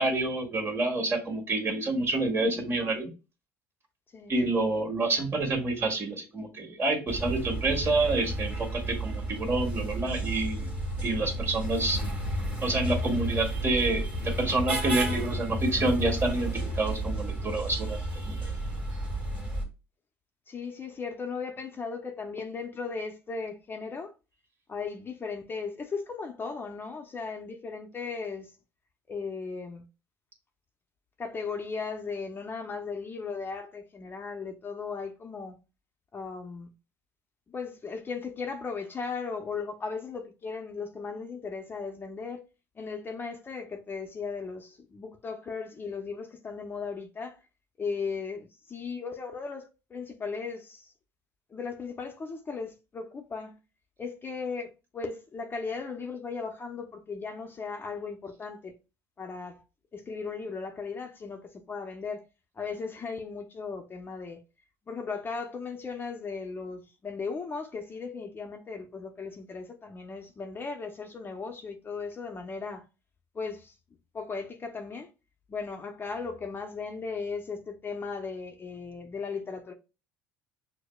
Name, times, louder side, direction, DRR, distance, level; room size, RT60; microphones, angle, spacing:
voice 1, 0.0-3.1 4.3-10.6 11.0-12.0 12.6-16.5 16.8-18.0 18.3-18.4, right 2 dB, 35° right, 1.5 m, -28 dB
sound 1, 7.1-19.7, right 1 dB, 15° right, 1.5 m, -32 dB
voice 2, 20.5-24.1 24.7-28.5 29.1-29.8 31.2-35.6 36.1-36.7 37.5-42.4 42.8-47.4 47.8-50.9 51.5-53.5 54.0-58.7 59.2-59.6 59.9-62.2 62.6-64.4 64.9-72.9 73.3-73.7 74.1-75.1 75.5-79.7, left 5 dB, 30° left, 0.6 m, -37 dB
6.2 x 2.1 x 2.3 m
hypercardioid pair, 75°, 7 cm